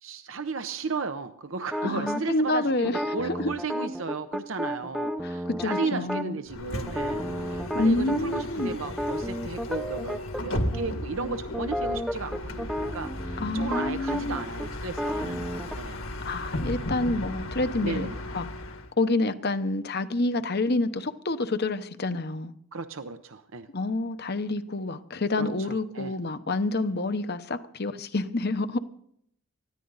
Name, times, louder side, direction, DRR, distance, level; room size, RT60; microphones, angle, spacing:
voice 1, 0.0-16.0 17.8-18.2 22.7-23.7 25.4-26.1, right 4 dB, 60° right, 0.8 m, -35 dB
sound 1, 1.7-2.2 2.8-6.3 6.9-10.4 10.7-10.9 11.2-15.8, equal, ahead, 0.7 m, -32 dB
voice 2, 1.8-3.5 5.2-6.4 7.7-8.7 13.4-14.4 16.2-18.1 18.3-18.5 19.0-22.5 23.7-28.8, left 2 dB, 45° left, 1.0 m, -28 dB
Bus, 6.5-18.9, left 1 dB, 65° left, 1.9 m, -35 dB
20.0 x 14.5 x 4.0 m
head